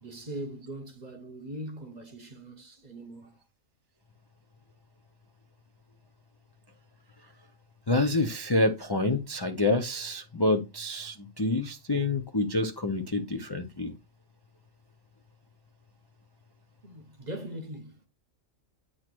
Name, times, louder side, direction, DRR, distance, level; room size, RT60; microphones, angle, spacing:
voice 1, 0.0-3.4 16.8-18.0, right 1 dB, 35° right, 1.0 m, -41 dB
voice 2, 7.9-13.9, left 2 dB, 25° left, 0.5 m, -27 dB
8.7 x 3.0 x 6.1 m
omnidirectional pair, 1.4 m